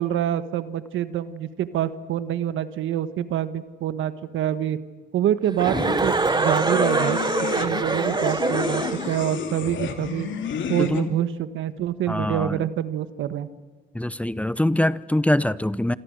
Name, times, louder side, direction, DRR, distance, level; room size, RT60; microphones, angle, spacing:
voice 1, 0.0-4.8 5.1-7.2 7.5-10.3 10.7-13.5, right 11 dB, 80° right, 12 dB, 1.4 m, -26 dB
sound 1, 5.6-11.0, left 6 dB, 70° left, 2.9 m, -31 dB
Chuckle chortle, 5.6-9.3, right 3 dB, 20° right, 1.1 m, -24 dB
voice 2, 10.8-11.1 12.1-12.6 13.9-15.9, left 1 dB, 5° left, 17 dB, 0.7 m, -23 dB
27.5 x 26.5 x 6.5 m, 1.4 s
cardioid pair, 90°, 20 cm